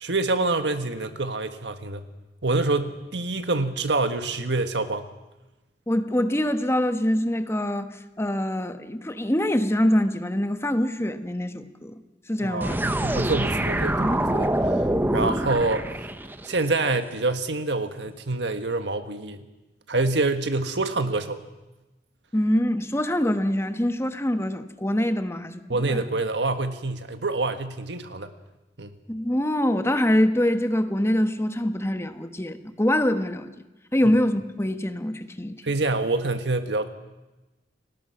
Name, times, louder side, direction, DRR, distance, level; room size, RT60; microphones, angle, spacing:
voice 1, 0.0-2.0 2.4-5.1 12.4-14.8 15.1-15.9 16.4-19.4 19.9-21.4 25.7-28.3 28.8-28.9 35.6-36.9, right 3 dB, 80° right, 8 dB, 1.6 m, -26 dB
voice 2, 5.9-7.9 8.2-12.0 12.3-12.6 22.3-25.6 25.9-26.0 29.1-33.5 33.9-35.5, left 1 dB, 15° left, 8 dB, 1.2 m, -24 dB
sound 1, 12.6-16.5, right 1 dB, 10° right, 0.9 m, -25 dB
30.0 x 19.5 x 6.0 m, 1.1 s
head